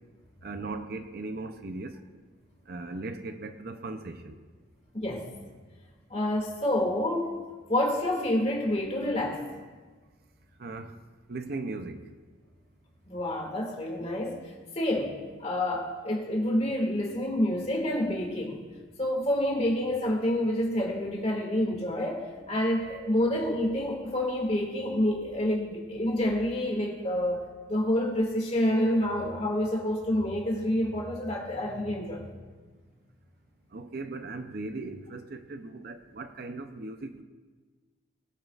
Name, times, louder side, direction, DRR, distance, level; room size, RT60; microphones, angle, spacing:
voice 1, 0.4-2.0 2.7-4.3 10.6-10.9 11.3-12.0 33.7-37.2, right 3 dB, 50° right, 8 dB, 0.6 m, -38 dB
voice 2, 4.9-5.3 6.1-7.3 7.7-9.4 13.0-15.1 15.4-18.6 19.0-27.4 27.7-32.3, left 1 dB, 35° left, -1 dB, 2.1 m, -28 dB
20.5 x 8.4 x 2.4 m, 1.4 s
head